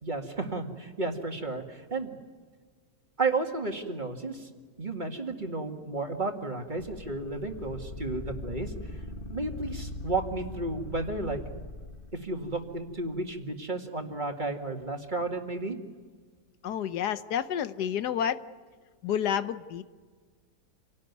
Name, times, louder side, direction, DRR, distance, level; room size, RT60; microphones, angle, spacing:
voice 1, 0.0-2.2 3.2-4.5 4.8-8.7 9.3-11.4 12.1-15.8, right 3 dB, 30° right, 4 dB, 2.2 m, -32 dB
sound 1, 6.8-13.0, left 2 dB, 35° left, 1.6 m, -41 dB
voice 2, 16.6-18.4 19.0-19.8, left 9 dB, 85° left, 13 dB, 1.5 m, -29 dB
28.0 x 18.0 x 9.5 m, 1.5 s
omnidirectional pair, 1.7 m